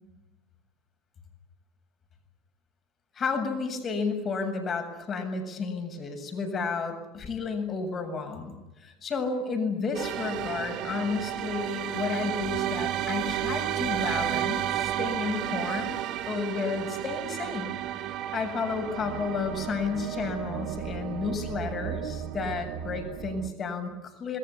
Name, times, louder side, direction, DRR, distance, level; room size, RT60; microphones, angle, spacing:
voice 1, 3.1-16.0 16.3-17.7 18.0-24.4, left 4 dB, 30° left, 7 dB, 7.7 m, -32 dB
sound 1, 9.9-23.5, right 11 dB, 50° right, 2.1 m, -32 dB
27.5 x 22.0 x 9.8 m, 0.99 s
figure-of-eight pair, 70°, 0 cm